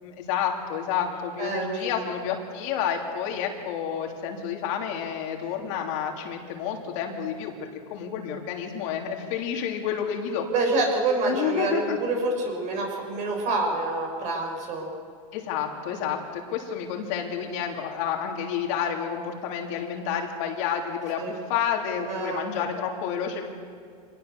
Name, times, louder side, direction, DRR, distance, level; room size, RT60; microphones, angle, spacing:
voice 1, 0.0-7.5 7.9-10.5 11.2-12.0 15.3-23.5, left 8 dB, 60° left, 2 dB, 3.2 m, -30 dB
voice 2, 1.4-1.9 10.5-14.9 21.2-21.3 22.1-22.7, right 3 dB, 40° right, 2 dB, 6.3 m, -27 dB
25.5 x 19.0 x 6.9 m, 2.2 s
supercardioid pair, 140°, 19 cm